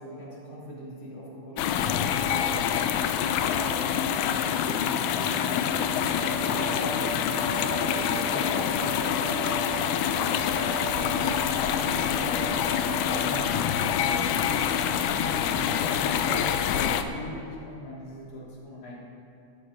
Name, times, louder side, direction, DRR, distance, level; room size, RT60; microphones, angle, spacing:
voice 1, 0.0-2.8 3.9-10.5 11.1-12.7 13.0-13.5 13.9-18.9, equal, 30° left, -7 dB, 3.5 m, -41 dB
sound 1, 1.6-17.0, left 9 dB, 85° left, 2.2 m, -26 dB
sound 2, 6.1-13.7, right 10 dB, 85° right, 2.1 m, -39 dB
14.0 x 11.5 x 5.3 m, 2.9 s
omnidirectional pair, 3.5 m